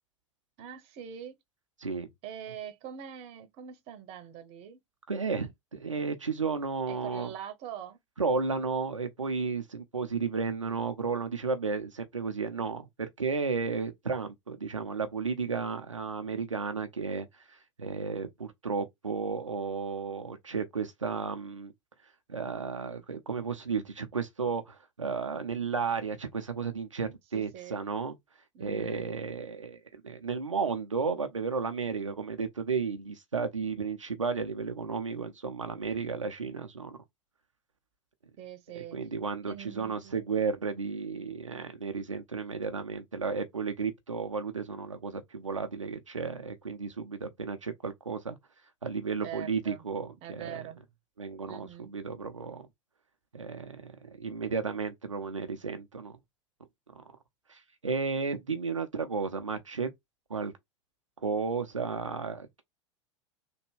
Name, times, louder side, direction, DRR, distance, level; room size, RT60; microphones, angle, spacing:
voice 1, 0.6-1.3 2.2-4.8 6.9-8.0 27.3-27.8 28.5-29.1 38.4-39.0 39.5-40.2 49.2-49.8 50.2-50.8 51.5-51.9, right 9 dB, 40° right, 0.7 m, -43 dB
voice 2, 5.1-7.3 8.2-21.7 22.3-28.2 28.6-37.0 38.8-48.4 48.8-50.6 51.2-52.7 53.3-56.2 57.0-57.1 57.5-59.9 60.3-60.5 61.2-62.6, right 5 dB, 85° right, 0.5 m, -33 dB
3.3 x 2.2 x 3.1 m
figure-of-eight pair, 85°, 16 cm